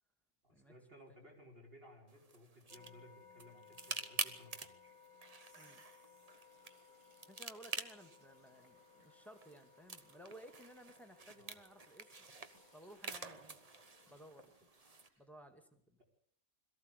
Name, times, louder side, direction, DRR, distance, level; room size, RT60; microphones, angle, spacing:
voice 1, 0.4-5.0 11.3-11.6, equal, 50° right, -1 dB, 5.2 m, -60 dB
sound 1, 2.1-15.1, right 3 dB, 30° right, 1.2 m, -48 dB
sound 2, 2.7-14.2, left 6 dB, 25° left, 1.7 m, -64 dB
sound 3, 5.2-11.9 12.2-15.3, right 1 dB, 80° right, 6.9 m, -71 dB
voice 2, 7.3-12.1 12.7-13.6 14.1-14.7 15.2-16.0, right 1 dB, ahead, 6 dB, 2.2 m, -57 dB
22.5 x 14.5 x 8.3 m, 0.65 s
omnidirectional pair, 1.3 m